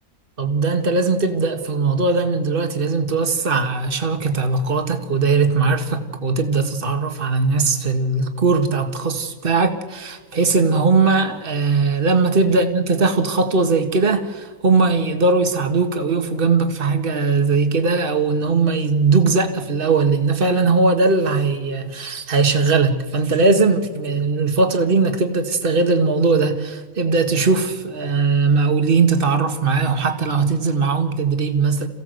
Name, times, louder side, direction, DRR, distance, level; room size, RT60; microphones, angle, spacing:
voice 1, 0.4-31.9, right 4 dB, 35° right, 1.9 m, -19 dB
28.0 x 16.0 x 8.0 m
omnidirectional pair, 1.5 m